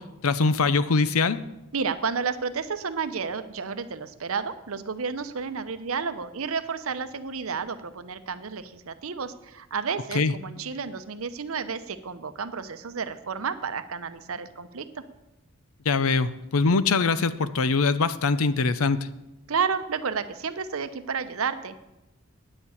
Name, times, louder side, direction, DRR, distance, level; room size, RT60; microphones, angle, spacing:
voice 1, 0.0-1.4 10.1-10.3 15.8-19.0, left 4 dB, 75° left, 14 dB, 0.6 m, -23 dB
voice 2, 1.7-15.0 19.5-21.9, right 5 dB, 70° right, 12 dB, 0.7 m, -31 dB
9.6 x 7.2 x 8.4 m, 0.96 s
head